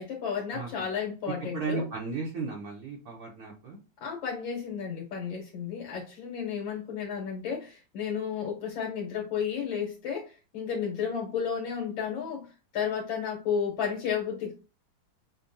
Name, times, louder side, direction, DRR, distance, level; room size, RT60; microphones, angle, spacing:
voice 1, 0.0-1.9 4.0-14.5, left 7 dB, 85° left, -1 dB, 1.7 m, -32 dB
voice 2, 1.5-3.8, right 4 dB, 60° right, -3 dB, 1.1 m, -35 dB
5.4 x 2.2 x 2.6 m, 0.32 s
omnidirectional pair, 2.0 m